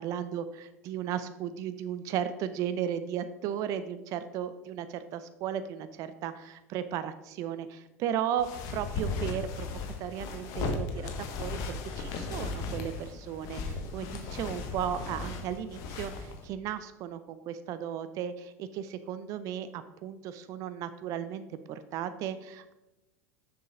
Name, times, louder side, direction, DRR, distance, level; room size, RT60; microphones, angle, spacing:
voice 1, 0.0-22.7, right 9 dB, 45° right, 12 dB, 0.5 m, -35 dB
sound 1, 8.4-16.5, left 4 dB, 50° left, 1.3 m, -36 dB
6.9 x 6.3 x 4.9 m, 0.99 s
hypercardioid pair, 80°, 8 cm